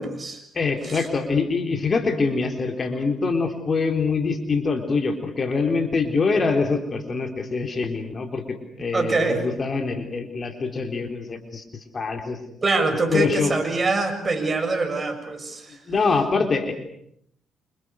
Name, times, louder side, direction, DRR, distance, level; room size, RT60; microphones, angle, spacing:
voice 1, 0.0-0.4 0.9-1.1 8.9-9.5 12.6-15.8, right 3 dB, 30° right, 5 dB, 7.0 m, -24 dB
voice 2, 0.5-12.4 13.1-13.5 15.9-16.7, left 4 dB, 40° left, 5 dB, 3.8 m, -24 dB
28.0 x 27.5 x 6.5 m, 0.70 s
cardioid pair, 90°, 0 cm